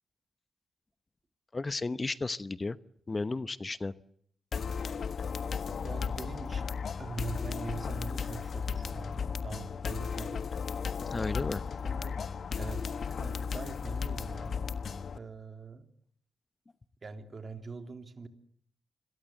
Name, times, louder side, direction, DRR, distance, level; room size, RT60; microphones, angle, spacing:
voice 1, 1.5-2.8 3.1-3.9 11.1-11.6, left 3 dB, 35° left, 15 dB, 1.0 m, -33 dB
sound 1, 4.5-15.2, left 6 dB, 60° left, 1.4 m, -35 dB
voice 2, 5.8-10.5 11.2-12.2 12.6-14.6 15.1-15.9 17.0-18.3, right 4 dB, 45° right, 7 dB, 3.3 m, -43 dB
27.0 x 22.5 x 7.9 m, 0.66 s
supercardioid pair, 50°, 0 cm